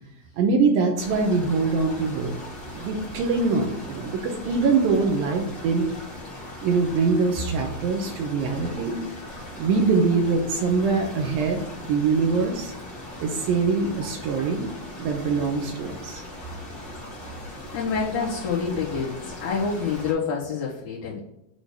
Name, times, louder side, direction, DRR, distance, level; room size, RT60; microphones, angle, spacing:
voice 1, 0.4-2.3 2.7-5.9 6.6-9.0 9.6-12.7 13.2-14.7 15.0-16.2, right 4 dB, 75° right, 3 dB, 2.3 m, -23 dB
sound 1, 1.0-20.1, left 1 dB, 40° left, 1.9 m, -39 dB
voice 2, 17.7-21.2, left 5 dB, 55° left, -9 dB, 2.6 m, -27 dB
8.5 x 3.8 x 6.5 m, 0.83 s
omnidirectional pair, 4.8 m